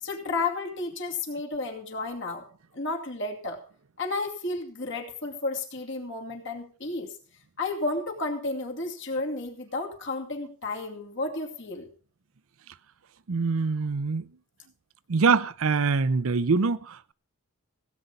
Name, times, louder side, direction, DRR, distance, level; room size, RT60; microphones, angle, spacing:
voice 1, 0.0-2.4 2.7-3.6 4.0-7.1 7.6-11.9, left 3 dB, 55° left, 2.5 m, -32 dB
voice 2, 13.3-14.2 15.1-17.1, right 4 dB, 70° right, 0.6 m, -24 dB
16.5 x 8.5 x 5.4 m
head